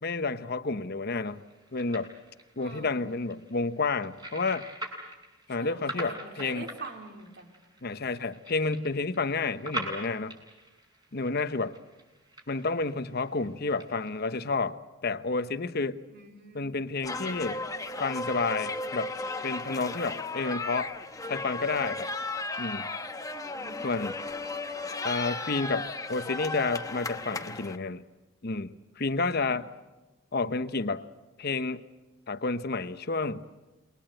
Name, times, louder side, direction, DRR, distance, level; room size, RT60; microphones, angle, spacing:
voice 1, 0.0-1.4 1.7-2.1 2.6-4.7 5.5-6.7 7.8-10.4 11.1-11.7 12.5-16.0 16.5-17.6 18.0-19.1 19.4-20.9 21.3-22.1 22.6-22.9 23.8-24.2 25.0-28.0 28.4-29.7 30.3-31.0 31.4-31.8 32.3-33.4, left 3 dB, 55° left, 12 dB, 1.0 m, -30 dB
sound 1, 1.3-14.5, right 1 dB, 20° right, 6.8 m, -44 dB
voice 2, 2.6-3.0 5.6-7.5 16.1-16.7 23.5-24.0 29.3-29.6, right 3 dB, 55° right, 4 dB, 3.3 m, -45 dB
sound 2, 17.0-27.8, left 3 dB, 15° left, 1.0 m, -35 dB
28.0 x 22.5 x 7.8 m, 1.1 s
head